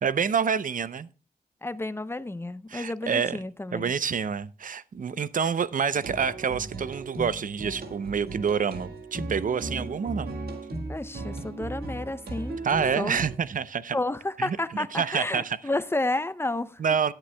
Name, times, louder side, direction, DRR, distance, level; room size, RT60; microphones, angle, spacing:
voice 1, 0.0-1.1 2.7-3.4 3.7-10.3 12.6-14.0 14.4-14.6 14.9-15.6 16.8-17.1, right 6 dB, 60° right, 0.6 m, -27 dB
voice 2, 1.6-3.9 10.9-12.6 13.0-13.2 13.9-16.8, left 2 dB, 15° left, 0.6 m, -31 dB
sound 1, 5.9-13.4, right 2 dB, 85° right, 1.8 m, -36 dB
16.5 x 8.9 x 2.2 m
cardioid pair, 70°, 16 cm